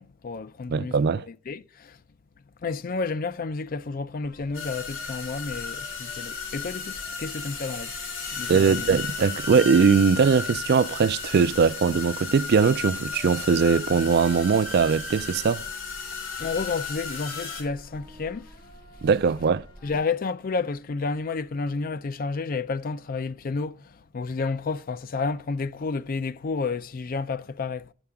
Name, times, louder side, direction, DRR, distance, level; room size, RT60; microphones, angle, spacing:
voice 1, 0.0-1.0 1.3-2.0 2.6-8.0 8.3-8.9 16.4-18.5 19.8-27.9, left 4 dB, 45° left, 0.4 m, -31 dB
voice 2, 0.7-1.3 8.5-15.7 19.0-19.7, right 5 dB, 55° right, 0.3 m, -21 dB
sound 1, 4.2-20.0, equal, 25° left, 3.5 m, -49 dB
sound 2, 4.5-17.6, left 5 dB, 75° left, 3.5 m, -34 dB
8.7 x 7.0 x 3.5 m
head